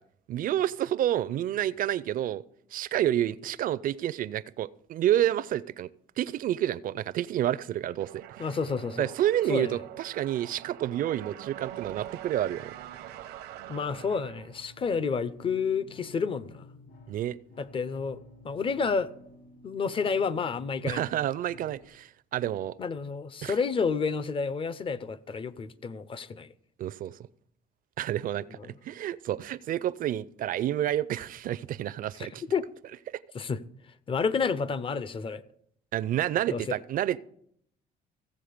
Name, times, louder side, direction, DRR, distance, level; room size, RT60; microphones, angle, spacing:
voice 1, 0.3-2.4 2.7-5.9 6.2-8.2 9.0-12.7 17.1-17.4 20.8-22.7 23.4-23.6 26.8-27.1 28.0-32.4 35.9-37.2, right 12 dB, 55° right, 0.5 m, -29 dB
sound 1, 8.0-14.7, right 12 dB, 90° right, 0.9 m, -44 dB
voice 2, 8.4-9.1 9.5-9.8 13.7-16.7 17.6-18.2 18.4-19.1 19.6-21.0 22.8-26.5 28.5-28.7 32.2-32.7 33.3-33.6 34.1-35.4 36.5-36.7, left 5 dB, 30° left, 0.6 m, -30 dB
sound 2, 13.9-21.9, left 2 dB, 55° left, 2.4 m, -52 dB
16.0 x 7.6 x 5.0 m
cardioid pair, 110°, 17 cm